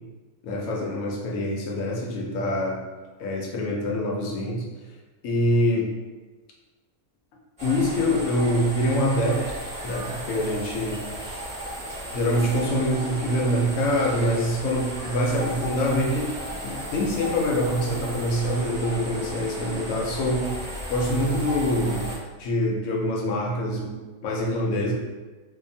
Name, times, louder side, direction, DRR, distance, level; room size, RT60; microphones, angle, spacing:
voice 1, 0.4-2.9 3.2-4.7 5.2-5.9 7.6-9.6 9.8-11.0 12.1-16.3 16.6-20.6 20.9-22.1 22.4-23.9 24.2-24.9, equal, 80° left, -1 dB, 1.0 m, -25 dB
sound 1, 7.6-22.2, equal, 5° right, 1.2 m, -35 dB
2.7 x 2.4 x 2.6 m, 1.2 s
omnidirectional pair, 1.4 m